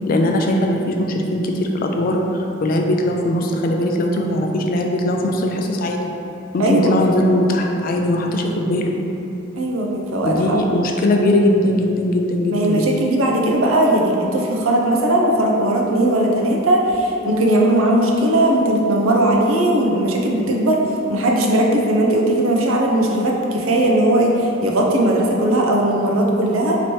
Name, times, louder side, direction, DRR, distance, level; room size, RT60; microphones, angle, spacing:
voice 1, 0.1-6.0 6.5-8.9 10.2-12.9, left 1 dB, 45° left, 2 dB, 0.3 m, -20 dB
voice 2, 6.6-6.9 9.6-10.6 12.5-26.8, right 1 dB, 80° right, 0 dB, 0.5 m, -18 dB
3.0 x 2.9 x 4.3 m, 2.9 s
head